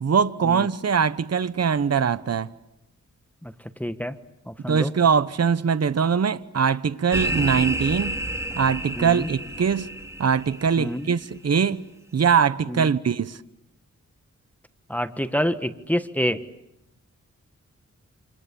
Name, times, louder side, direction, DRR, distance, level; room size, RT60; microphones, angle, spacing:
voice 1, 0.0-2.5 4.7-8.2 8.6-9.9 10.2-11.8 12.1-13.4, right 6 dB, 60° right, 1.0 m, -22 dB
voice 2, 3.8-4.2 4.5-4.9 9.0-9.3 10.8-11.1 12.7-12.9 14.9-16.4, equal, 5° left, 1.5 m, -27 dB
sound 1, 7.1-11.0, right 1 dB, 10° right, 4.0 m, -30 dB
28.5 x 27.5 x 7.1 m
cardioid pair, 60°, 29 cm